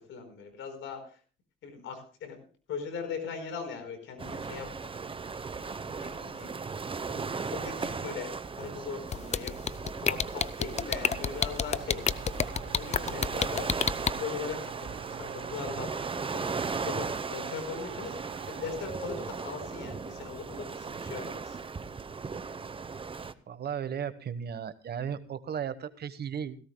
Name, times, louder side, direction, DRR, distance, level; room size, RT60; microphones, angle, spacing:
voice 1, 0.1-1.2 1.6-4.9 5.6-6.5 7.1-12.0 12.6-13.9 14.1-21.6, left 5 dB, 80° left, 7 dB, 4.5 m, -40 dB
sound 1, 4.2-23.3, right 4 dB, 25° right, 0.9 m, -37 dB
sound 2, 9.1-14.1, left 6 dB, 35° left, 0.6 m, -27 dB
sound 3, 10.9-18.9, right 11 dB, 80° right, 1.1 m, -46 dB
voice 2, 23.5-26.6, right 8 dB, 55° right, 12 dB, 1.2 m, -35 dB
17.5 x 17.0 x 2.2 m, 0.39 s
cardioid pair, 90°, 20 cm